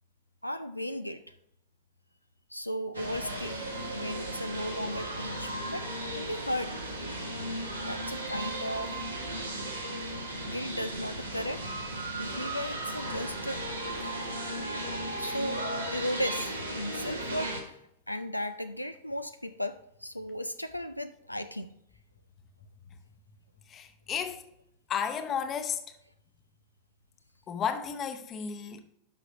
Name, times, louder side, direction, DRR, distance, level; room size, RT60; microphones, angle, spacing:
voice 1, 0.4-1.3 2.5-3.6 3.9-5.9 6.2-6.8 7.9-9.0 10.5-11.6 12.2-13.6 14.2-14.4 15.2-15.6 15.9-17.8 18.1-21.7, equal, 90° left, 0.4 m, -35 dB
sound 1, 2.9-17.6, right 1 dB, 85° right, 1.6 m, -36 dB
voice 2, 23.6-24.4 24.9-26.0 27.5-28.8, left 7 dB, 30° left, 0.9 m, -33 dB
11.0 x 6.0 x 2.9 m
figure-of-eight pair, 90°, 0 cm